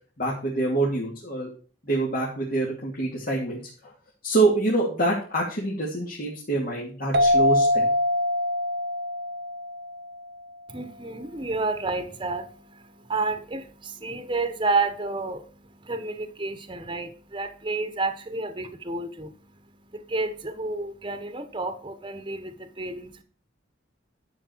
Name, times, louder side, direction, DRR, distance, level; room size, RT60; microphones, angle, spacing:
voice 1, 0.2-1.5 1.8-3.9 4.2-7.9, right 2 dB, 50° left, -4 dB, 2.8 m, -26 dB
sound 1, 7.1-10.4, left 1 dB, 55° right, 1.0 m, -24 dB
voice 2, 10.7-23.2, right 3 dB, 25° right, 9 dB, 1.3 m, -31 dB
11.5 x 6.9 x 4.7 m, 0.41 s
head